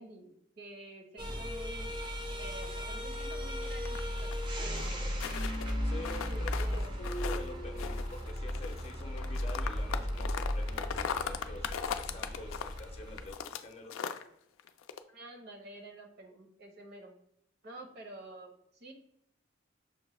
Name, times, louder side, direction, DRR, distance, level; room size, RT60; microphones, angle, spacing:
voice 1, 0.0-2.0 2.4-4.3 4.6-5.0 6.3-7.0 15.1-17.2 17.6-18.9, right 2 dB, 55° right, 3 dB, 0.8 m, -49 dB
sound 1, 1.2-13.3, equal, 25° right, 0.5 m, -36 dB
sound 2, 2.6-4.5 4.8-5.7 6.0-7.5 7.8-13.6 13.9-14.2 14.6-15.0, left 8 dB, 85° left, 0.3 m, -38 dB
sound 3, 4.4-9.3, equal, 80° right, 1.6 m, -46 dB
voice 2, 5.8-6.7 7.0-14.0, left 2 dB, 30° left, 3 dB, 0.5 m, -47 dB
6.0 x 2.2 x 3.0 m, 0.74 s
head